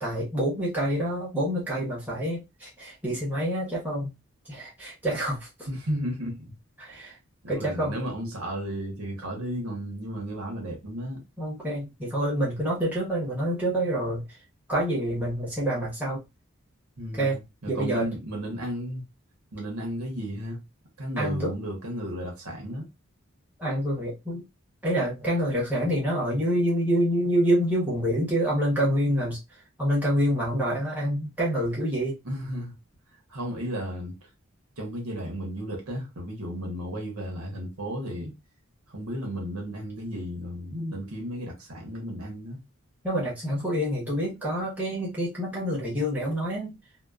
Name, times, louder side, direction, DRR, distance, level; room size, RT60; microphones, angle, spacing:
voice 1, 0.0-4.1 4.5-5.5 6.8-7.2 7.5-7.9 11.4-14.2 14.7-16.2 17.1-17.4 17.7-18.1 21.2-21.5 23.6-24.5 24.8-29.4 29.8-32.2 43.0-46.7, equal, 10° right, 1.0 m, -27 dB
voice 2, 5.7-6.6 6.9-7.1 7.4-11.2 17.0-19.0 19.5-20.6 21.0-22.9 32.2-32.8 33.3-34.3 34.8-38.3 38.9-42.6, equal, 90° right, 1.1 m, -34 dB
2.9 x 2.2 x 2.3 m
head